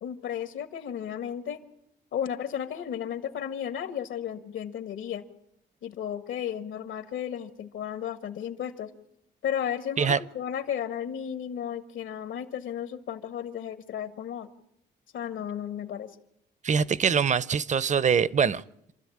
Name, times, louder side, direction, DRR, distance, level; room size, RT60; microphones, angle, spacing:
voice 1, 0.0-1.6 2.1-5.2 5.8-8.9 9.4-14.5 15.1-16.1, left 9 dB, 75° left, 10 dB, 1.7 m, -34 dB
voice 2, 16.6-18.6, right 6 dB, 35° right, 19 dB, 0.7 m, -23 dB
27.0 x 13.0 x 8.7 m, 0.79 s
cardioid pair, 90°, 20 cm